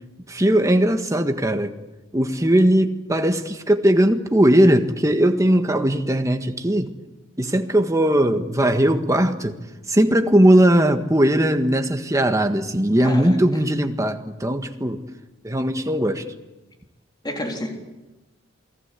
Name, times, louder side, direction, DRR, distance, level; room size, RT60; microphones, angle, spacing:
voice 1, 0.3-1.8 2.1-6.9 7.4-9.6 9.9-15.0 15.4-16.2, right 1 dB, 15° right, 1.6 m, -19 dB
voice 2, 13.0-13.4 17.2-17.7, left 1 dB, 20° left, 3.8 m, -29 dB
28.0 x 19.5 x 8.5 m
head